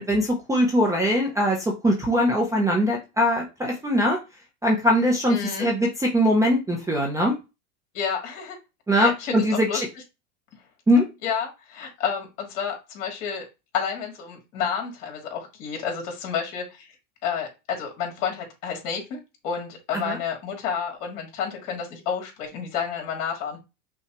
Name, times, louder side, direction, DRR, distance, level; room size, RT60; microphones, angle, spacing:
voice 1, 0.0-4.2 4.6-7.4 8.9-9.9 10.9-11.1 19.9-20.2, equal, 5° right, 0 dB, 0.6 m, -21 dB
voice 2, 5.3-5.7 7.9-8.6 8.9-9.8 11.2-13.4 13.7-16.9 17.2-23.6, left 7 dB, 60° left, 1 dB, 2.5 m, -30 dB
5.7 x 2.4 x 2.9 m, 0.26 s
supercardioid pair, 135°, 44 cm